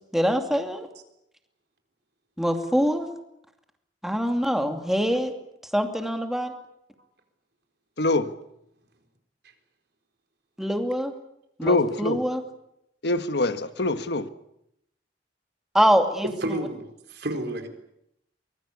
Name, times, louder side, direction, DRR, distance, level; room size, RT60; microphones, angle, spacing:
voice 1, 0.1-0.9 2.4-3.1 4.0-5.3 5.7-6.5 10.6-11.1 11.6-12.4 15.7-16.3, equal, ahead, 2.4 m, -24 dB
voice 2, 8.0-8.3 11.6-12.2 13.0-14.3, left 2 dB, 65° left, 1.4 m, -24 dB
voice 3, 16.4-17.7, right 1 dB, 65° right, 4.1 m, -31 dB
24.0 x 22.0 x 8.4 m
head